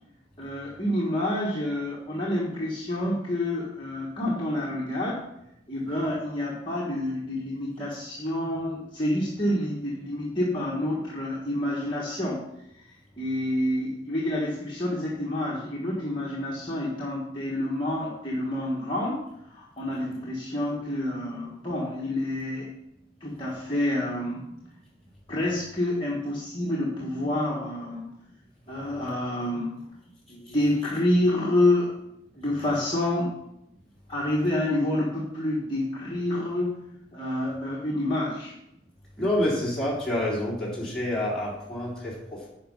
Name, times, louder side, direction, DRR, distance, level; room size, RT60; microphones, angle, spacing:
voice 1, 0.4-5.2 5.7-12.4 13.2-19.2 19.5-22.7 23.2-24.5 25.3-28.1 28.7-29.9 30.3-31.9 32.4-33.3 34.1-36.8 37.1-38.5, left 1 dB, 25° left, -5 dB, 1.4 m, -28 dB
voice 2, 39.2-42.5, left 1 dB, 5° left, -7 dB, 3.6 m, -28 dB
10.0 x 5.4 x 5.4 m, 0.83 s
head